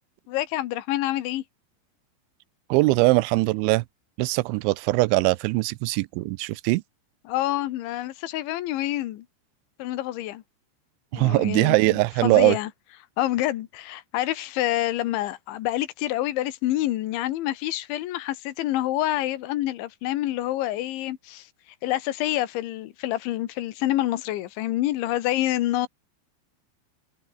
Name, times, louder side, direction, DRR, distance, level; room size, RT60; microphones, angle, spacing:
voice 1, 0.3-1.4 7.3-9.3 9.8-10.4 11.1-12.7 13.2-21.5 21.8-25.9, left 15 dB, 80° left, 3.7 m, -27 dB
voice 2, 2.7-3.8 4.2-6.8 11.1-12.6, right 21 dB, 85° right, 3.0 m, -21 dB
omnidirectional pair, 5.3 m